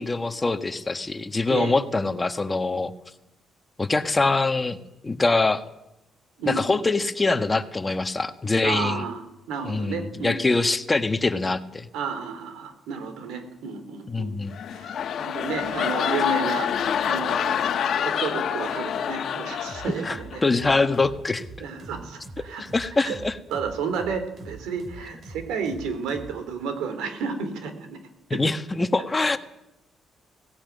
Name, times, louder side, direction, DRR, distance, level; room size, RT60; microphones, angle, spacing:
voice 1, 0.0-2.9 3.8-5.6 6.5-9.0 9.6-11.9 14.1-14.5 20.0-21.4 22.6-23.4 28.3-29.4, left 3 dB, 20° left, 9 dB, 1.4 m, -24 dB
voice 2, 8.6-10.6 11.9-14.3 14.7-14.9 15.2-20.4 21.6-22.6 23.0-23.2 23.5-28.0 28.3-28.4, right 5 dB, 90° right, 9 dB, 3.4 m, -31 dB
sound 1, 14.4-20.4 20.8-21.1, left 8 dB, 65° left, 1.5 m, -27 dB
sound 2, 19.7-26.4, right 3 dB, 40° right, 4.1 m, -43 dB
17.0 x 16.5 x 9.4 m, 0.89 s
cardioid pair, 90°, 0 cm